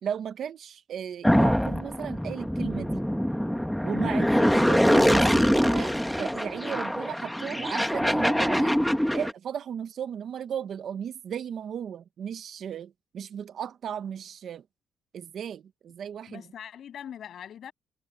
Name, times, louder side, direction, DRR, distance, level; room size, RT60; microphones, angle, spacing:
voice 1, 0.0-3.0 3.8-5.9 6.2-8.8 9.1-14.6 15.1-16.4, right 8 dB, 65° right, 1.0 m, -35 dB
sound 1, 1.2-9.3, equal, ahead, 1.3 m, -24 dB
voice 2, 16.3-17.7, left 9 dB, 65° left, 7.9 m, -42 dB
cardioid pair, 90°, 0 cm